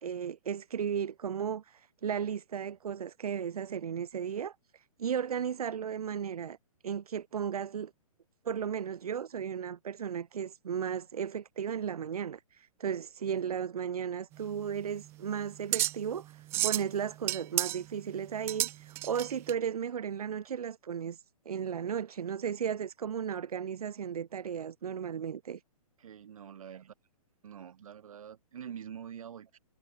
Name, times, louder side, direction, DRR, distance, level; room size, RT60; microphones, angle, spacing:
voice 1, 0.0-6.6 6.8-7.9 8.4-25.6, right 8 dB, 80° right, 1.3 m, -35 dB
sound 1, 14.3-19.5, right 17 dB, 15° right, 0.4 m, -33 dB
voice 2, 26.0-26.9 27.4-29.6, right 8 dB, 65° right, 5.5 m, -45 dB
hypercardioid pair, 155°, 19 cm